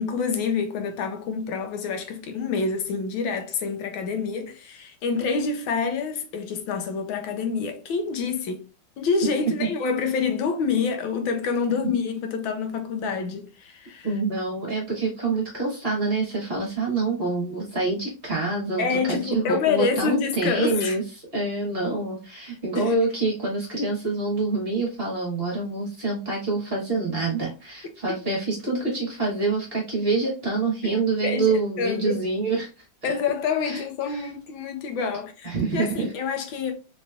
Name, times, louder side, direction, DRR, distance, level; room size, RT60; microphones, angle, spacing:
voice 1, 0.0-8.6 9.0-14.1 18.8-21.0 22.7-22.9 28.1-28.2 30.8-30.9 31.2-32.2 33.0-36.7, left 5 dB, 85° left, 1.5 m, -27 dB
voice 2, 14.0-21.0 21.3-32.8 33.6-33.8 34.1-34.3 35.4-36.1, right 3 dB, 35° right, 1.1 m, -26 dB
4.0 x 3.1 x 2.3 m
omnidirectional pair, 2.1 m